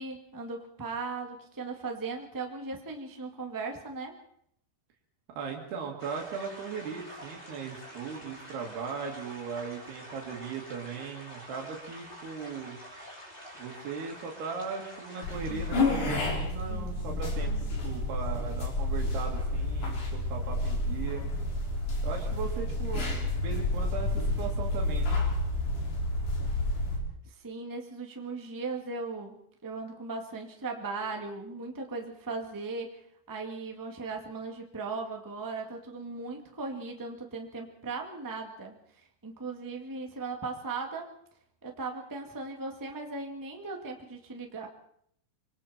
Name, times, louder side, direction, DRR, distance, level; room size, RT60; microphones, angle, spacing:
voice 1, 0.0-4.2 27.2-29.3 29.6-32.9 33.3-41.1 41.6-44.7, right 3 dB, 10° right, 2 dB, 0.8 m, -38 dB
voice 2, 5.3-12.8 13.6-21.3 22.0-23.1 23.3-25.2, right 5 dB, 85° right, 0 dB, 4.2 m, -38 dB
sound 1, 6.0-16.0, equal, 15° left, 5.3 m, -47 dB
sound 2, 15.2-27.0, left 2 dB, 55° left, 4.9 m, -30 dB
26.0 x 23.5 x 4.4 m, 0.69 s
omnidirectional pair, 4.5 m